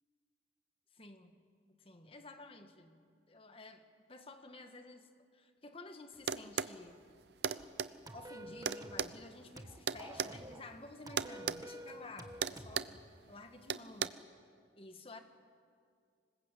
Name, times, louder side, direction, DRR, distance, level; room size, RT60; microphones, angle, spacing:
voice 1, 0.9-1.3 1.8-3.0 3.3-7.0 8.1-13.0 13.3-14.2 14.8-15.2, left 2 dB, 30° left, 7 dB, 1.7 m, -52 dB
sound 1, 6.3-6.8 7.4-7.9 8.6-10.3 11.2-11.6 11.9-12.1 12.4-13.0 13.7-14.1, right 7 dB, 65° right, 0.7 m, -35 dB
sound 2, 8.1-9.1 9.6-10.7 11.1-12.8, right 1 dB, 20° right, 1.3 m, -49 dB
26.0 x 21.0 x 8.4 m, 2.2 s
head